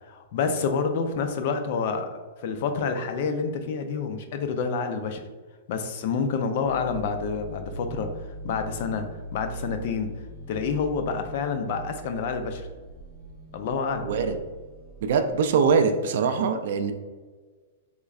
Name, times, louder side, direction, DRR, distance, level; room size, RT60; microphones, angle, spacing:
voice 1, 0.1-5.2 5.7-8.1 8.4-9.0 9.3-10.1 10.5-12.7 13.5-14.1, left 5 dB, 45° left, 7 dB, 0.4 m, -28 dB
sound 1, 6.5-15.8, right 1 dB, 5° left, 0.9 m, -41 dB
voice 2, 14.0-14.3 15.0-16.9, right 5 dB, 55° right, 6 dB, 0.3 m, -23 dB
3.6 x 3.1 x 2.4 m, 1.4 s
supercardioid pair, 170°, 0 cm